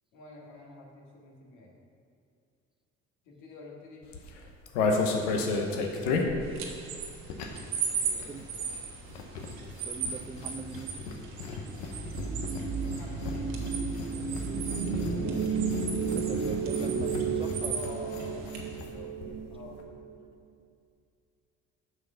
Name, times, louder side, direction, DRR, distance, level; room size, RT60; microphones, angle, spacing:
voice 1, 0.1-1.7 3.2-4.1 7.5-8.7 12.7-13.6 17.7-18.4 18.8-19.7, left 3 dB, 65° left, -2 dB, 2.1 m, -48 dB
sound 1, 4.0-7.8 8.0-18.9 19.2-19.3 19.5-19.8, left 3 dB, 85° left, 0.9 m, -34 dB
voice 2, 5.7-6.6 8.3-8.5 9.9-11.0 15.1-15.7 16.1-18.3 19.2-19.6, right 5 dB, 15° right, 8 dB, 0.3 m, -43 dB
sound 2, 6.4-18.8, right 6 dB, 75° right, 1.3 m, -38 dB
sound 3, 11.8-20.1, right 5 dB, 50° right, 1.3 m, -33 dB
7.6 x 5.9 x 5.7 m, 2.4 s
hypercardioid pair, 60°, 33 cm